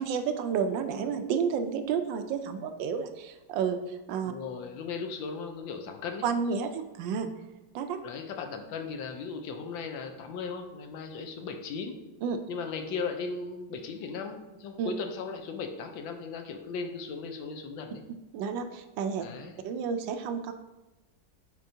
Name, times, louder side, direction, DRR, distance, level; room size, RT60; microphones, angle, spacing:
voice 1, 0.0-4.3 6.2-7.3 7.7-8.0 12.2-12.4 14.8-14.9 18.3-19.3 19.6-20.5, right 6 dB, 80° right, 8 dB, 1.3 m, -31 dB
voice 2, 4.3-6.3 8.0-12.0 12.5-18.0 19.2-19.6, left 5 dB, 85° left, 5 dB, 1.4 m, -37 dB
8.0 x 4.5 x 2.7 m, 1.1 s
omnidirectional pair, 2.1 m